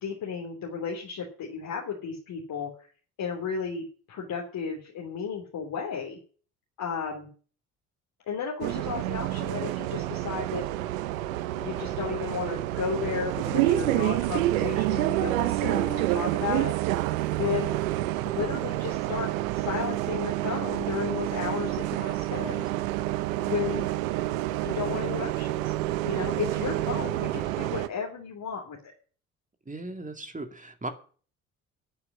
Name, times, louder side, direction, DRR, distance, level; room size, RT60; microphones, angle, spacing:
voice 1, 0.0-2.7 3.2-6.2 6.8-7.3 8.2-10.6 11.5-16.7 17.3-17.8 18.2-22.7 23.3-23.9 24.6-25.7 26.0-28.8, left 6 dB, 55° left, -2 dB, 3.2 m, -33 dB
Bus, 8.6-27.9, right 16 dB, 80° right, 0.8 m, -28 dB
voice 2, 29.7-30.9, right 2 dB, 20° right, 7 dB, 2.4 m, -37 dB
11.5 x 6.9 x 9.5 m, 0.41 s
hypercardioid pair, 50°, 40 cm